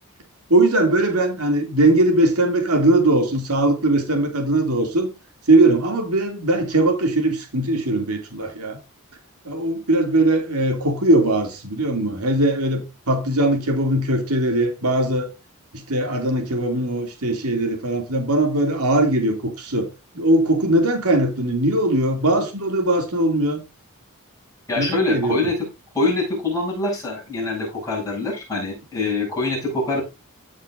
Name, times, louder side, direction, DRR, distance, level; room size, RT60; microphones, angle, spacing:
voice 1, 0.5-5.1 5.5-8.8 9.4-12.8 13.1-15.3 15.7-19.9 20.1-23.6 24.8-25.4, right 1 dB, 85° right, 2.5 m, -20 dB
voice 2, 24.7-25.7 25.9-30.0, left 2 dB, 15° left, 7.2 m, -24 dB
16.0 x 6.5 x 2.5 m
head